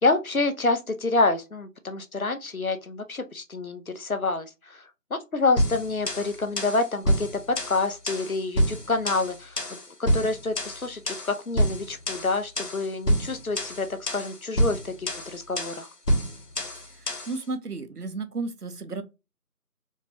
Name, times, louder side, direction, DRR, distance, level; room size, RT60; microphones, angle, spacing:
voice 1, 0.0-4.8 5.1-7.3 7.7-9.6 10.0-15.9, left 3 dB, 60° left, 0.7 m, -27 dB
sound 1, 5.6-17.4, equal, 80° left, 1.4 m, -28 dB
voice 2, 17.3-19.0, right 3 dB, 70° right, 0.8 m, -32 dB
4.4 x 2.4 x 2.8 m
figure-of-eight pair, 180°, 47 cm